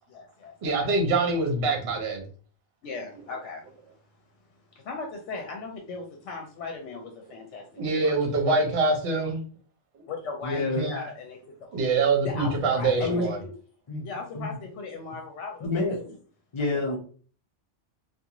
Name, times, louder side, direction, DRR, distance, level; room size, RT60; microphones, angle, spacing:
voice 1, 0.1-0.9 2.8-3.7 4.8-7.6 7.9-8.1 8.4-8.7 10.1-11.7 12.2-13.5 14.0-15.7 16.0-16.1 16.7-17.0, left 4 dB, 75° left, 2 dB, 0.9 m, -38 dB
voice 2, 0.6-2.2 7.8-9.4 10.7-10.9 11.7-13.4, right 3 dB, 60° right, 2 dB, 0.9 m, -24 dB
voice 3, 10.4-10.9 13.0-13.3 13.9-14.1 14.3-14.6 15.6-16.0 16.5-17.0, left 2 dB, 45° left, -1 dB, 0.4 m, -28 dB
2.4 x 2.3 x 2.8 m, 0.42 s
omnidirectional pair, 1.2 m